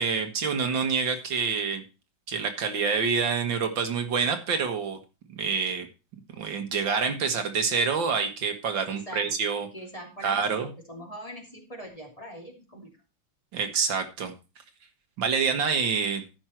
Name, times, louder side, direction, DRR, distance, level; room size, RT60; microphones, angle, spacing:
voice 1, 0.0-1.8 2.3-5.0 5.3-5.9 6.4-9.7 10.2-10.7 13.5-14.3 15.2-16.2, right 5 dB, 75° right, 7 dB, 2.1 m, -27 dB
voice 2, 8.9-9.3 9.7-13.0, equal, 15° left, 0 dB, 3.0 m, -42 dB
14.0 x 6.1 x 4.5 m, 0.30 s
omnidirectional pair, 2.1 m